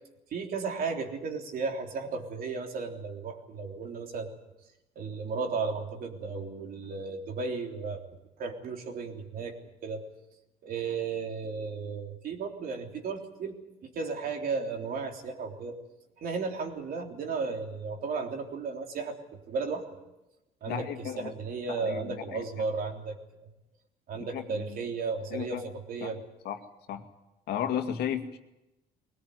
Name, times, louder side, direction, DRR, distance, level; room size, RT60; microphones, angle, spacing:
voice 1, 0.3-4.3 5.0-8.0 8.4-9.6 9.8-10.0 10.6-15.8 16.2-20.0 20.6-23.5 24.1-26.2, right 4 dB, 60° right, 3 dB, 3.6 m, -34 dB
voice 2, 20.7-21.3 21.8-22.6 24.2-24.8 25.3-25.6 26.0-26.1 26.4-26.6 26.9-27.0 27.5-28.4, left 9 dB, 75° left, 6 dB, 2.2 m, -34 dB
21.0 x 18.5 x 9.5 m, 0.96 s
cardioid pair, 110°, 17 cm